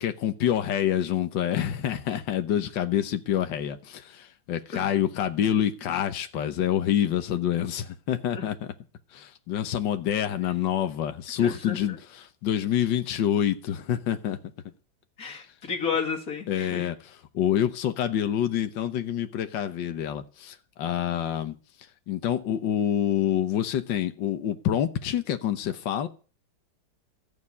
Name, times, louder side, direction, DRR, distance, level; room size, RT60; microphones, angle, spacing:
voice 1, 0.0-8.6 9.1-14.4 15.3-15.4 16.5-21.6 22.1-26.1, left 10 dB, 80° left, 1.7 m, -27 dB
voice 2, 11.4-12.0 15.2-16.9, left 6 dB, 50° left, 3.1 m, -32 dB
14.0 x 7.4 x 9.6 m
omnidirectional pair, 2.0 m